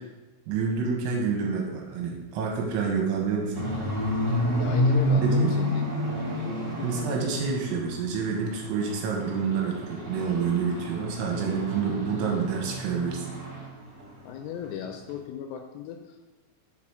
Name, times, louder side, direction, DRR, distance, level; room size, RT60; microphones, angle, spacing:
voice 1, 0.5-3.6 5.2-5.5 6.8-13.3, right 5 dB, 80° right, 0 dB, 3.1 m, -28 dB
sound 1, 3.5-8.1 8.5-13.7 14.0-14.3 14.6-14.7 15.1-15.2, equal, 55° right, 0.8 m, -29 dB
voice 2, 4.6-5.8 6.8-6.9 14.3-16.2, left 8 dB, 85° left, 4 dB, 2.8 m, -36 dB
7.4 x 4.1 x 4.9 m, 1.2 s
omnidirectional pair, 5.9 m